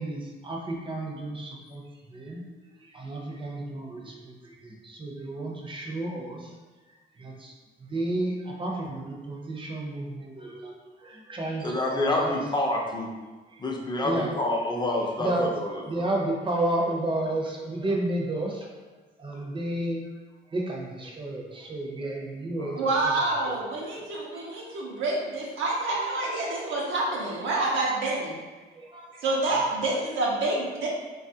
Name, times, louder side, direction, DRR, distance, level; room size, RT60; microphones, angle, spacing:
voice 1, 0.0-1.8 2.1-6.5 7.2-7.5 7.8-10.7 11.0-12.4 13.5-13.6 14.0-14.4 15.2-15.5 15.8-18.7 19.2-20.1 20.5-23.1 23.5-23.6 23.9-24.1 24.3-25.0 26.5-26.7 28.8-29.1 29.6-29.7, right 1 dB, 25° right, -1 dB, 0.6 m, -32 dB
voice 2, 11.6-13.1 13.6-15.8 22.6-22.7, left 1 dB, 20° left, 0 dB, 0.5 m, -27 dB
voice 3, 22.8-28.4 29.1-30.9, right 2 dB, 75° right, -4 dB, 0.6 m, -27 dB
3.0 x 2.3 x 2.7 m, 1.3 s
cardioid pair, 90°, 20 cm